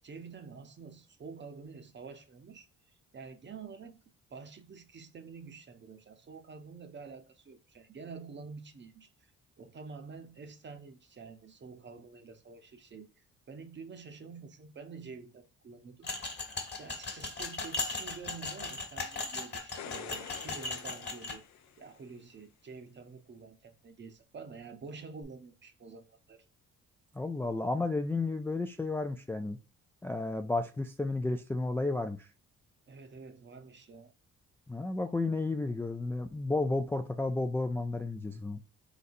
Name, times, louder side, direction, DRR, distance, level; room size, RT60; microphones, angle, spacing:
voice 1, 0.0-4.0 4.3-9.3 9.6-16.2 16.8-21.4 21.8-26.5 32.9-34.1, right 5 dB, 40° right, 0.8 m, -48 dB
sound 1, 16.0-21.4, left 3 dB, 35° left, 1.4 m, -38 dB
sound 2, 19.6-22.1 25.2-25.3, left 9 dB, 65° left, 0.6 m, -47 dB
voice 2, 27.1-29.6 30.0-32.3 34.7-38.6, left 2 dB, 10° left, 0.3 m, -32 dB
4.0 x 3.9 x 2.5 m
cardioid pair, 90°, 30 cm